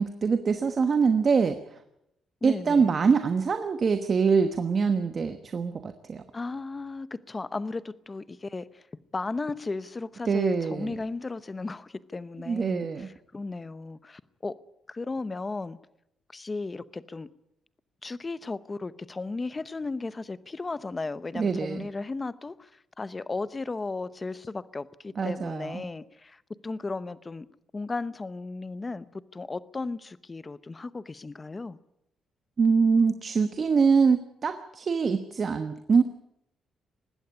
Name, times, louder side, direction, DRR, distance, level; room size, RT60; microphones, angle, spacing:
voice 1, 0.0-1.6 2.4-6.2 10.3-10.9 12.5-13.1 21.3-21.9 25.2-25.8 32.6-36.0, right 5 dB, 35° right, 1.2 m, -24 dB
voice 2, 2.4-2.9 6.3-8.8 9.1-14.6 14.9-15.8 16.3-17.3 18.0-27.5 27.7-31.8, left 3 dB, 20° left, 0.8 m, -35 dB
20.0 x 16.0 x 9.7 m
cardioid pair, 140°, 0 cm